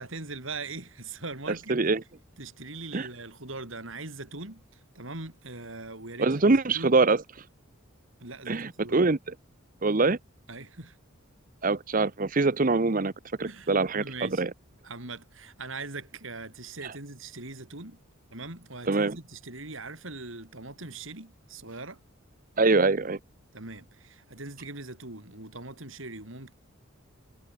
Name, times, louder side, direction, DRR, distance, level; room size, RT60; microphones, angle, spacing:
voice 1, 0.0-1.7 2.4-7.0 8.2-9.0 10.5-11.0 13.4-13.7 14.0-14.5 14.8-18.0 18.3-22.0 23.5-26.5, right 3 dB, 70° right, 4.9 m, -41 dB
voice 2, 1.7-2.0 2.9-3.1 6.2-7.2 8.5-9.2 9.8-10.2 11.6-13.1 13.4-14.5 18.9-19.2 22.6-23.2, right 3 dB, 40° right, 0.8 m, -24 dB
head